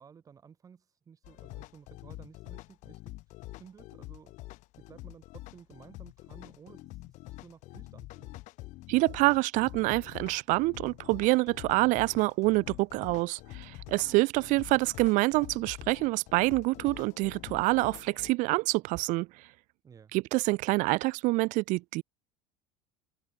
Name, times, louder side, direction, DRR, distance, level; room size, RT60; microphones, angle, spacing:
voice 1, 0.0-8.4 19.8-20.1, right 7 dB, 20° right, 6.9 m, -55 dB
sound 1, 1.2-18.3, left 19 dB, 50° left, 2.8 m, -46 dB
voice 2, 8.9-19.3 20.1-22.0, right 22 dB, 55° right, 1.7 m, -26 dB
cardioid pair, 165°, 16 cm